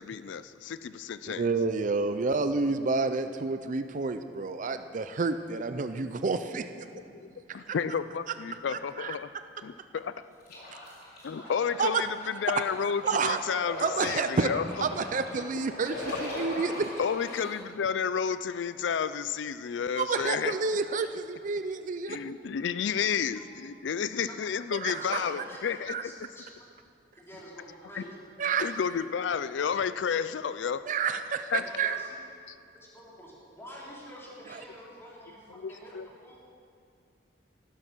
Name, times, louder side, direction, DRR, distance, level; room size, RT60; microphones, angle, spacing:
voice 1, 0.0-1.5 7.2-9.3 9.6-10.2 11.2-14.9 15.4-15.5 16.8-20.6 22.1-26.2 27.9-28.0 28.6-30.8 31.5-31.6 35.5-36.1, left 7 dB, 90° left, 14 dB, 0.4 m, -31 dB
voice 2, 1.2-6.7 7.7-7.8 8.7-9.2 11.8-12.0 12.6-12.7 13.0-13.4 13.8-14.5 14.8-16.9 20.0-22.2 24.7-25.2 25.9-26.0 28.4-28.7 30.8-32.0 34.5-34.6, right 4 dB, 45° right, 9 dB, 0.5 m, -29 dB
sound 1, 10.5-17.4, left 1 dB, 60° left, 4.1 m, -40 dB
voice 3, 25.0-25.8 26.0-26.7 27.2-28.2 31.6-32.1 32.9-36.4, equal, 15° left, -6 dB, 3.8 m, -46 dB
15.0 x 12.0 x 6.1 m, 2.4 s
head